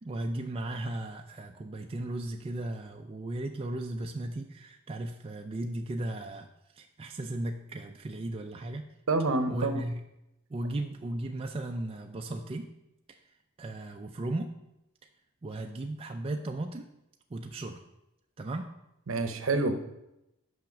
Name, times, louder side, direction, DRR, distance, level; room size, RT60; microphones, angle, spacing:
voice 1, 0.0-6.5 6.7-8.9 9.5-10.0 10.5-12.7 13.1-13.2 13.6-14.5 15.4-16.9 17.3-17.8 18.4-18.7, right 1 dB, 25° right, 3 dB, 0.3 m, -36 dB
voice 2, 9.1-9.8 19.1-19.7, right 3 dB, 65° right, 8 dB, 0.7 m, -27 dB
5.9 x 5.7 x 5.1 m, 0.88 s
head